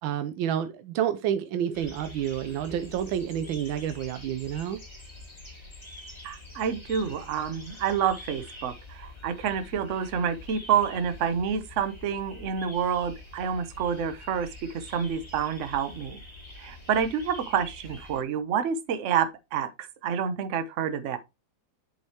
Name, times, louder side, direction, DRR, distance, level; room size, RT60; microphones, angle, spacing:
voice 1, 0.0-4.8, right 10 dB, 85° right, 1.4 m, -29 dB
sound 1, 1.7-18.2, left 2 dB, 15° left, 2.2 m, -46 dB
voice 2, 6.2-16.2 16.6-21.2, right 7 dB, 50° right, 0.9 m, -28 dB
7.6 x 5.6 x 2.8 m
omnidirectional pair, 2.1 m